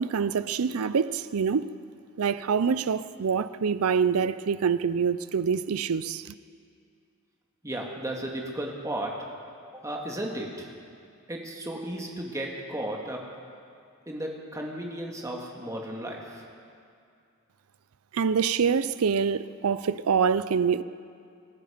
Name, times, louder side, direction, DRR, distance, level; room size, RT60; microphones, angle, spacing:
voice 1, 0.0-1.7 2.2-6.2 18.1-20.8, right 6 dB, 85° right, 0.5 m, -25 dB
voice 2, 7.6-9.1 9.7-10.7 11.3-13.2 14.1-16.5, right 1 dB, 15° right, 1.9 m, -34 dB
25.5 x 10.5 x 5.1 m
head